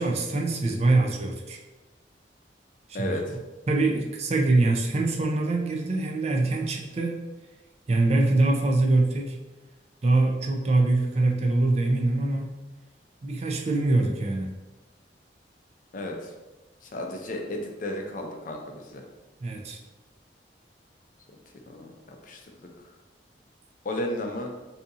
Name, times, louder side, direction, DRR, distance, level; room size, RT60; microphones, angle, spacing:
voice 1, 0.0-1.6 2.9-3.2 3.7-7.2 7.9-9.4 10.0-12.5 13.2-14.5 19.4-19.8, right 2 dB, 35° right, 1 dB, 0.4 m, -24 dB
voice 2, 2.9-3.4 15.9-16.3 16.8-19.0 21.3-21.4 21.7-22.7 23.8-24.5, left 1 dB, 50° left, 2 dB, 0.5 m, -33 dB
2.7 x 2.7 x 3.5 m, 1.1 s
head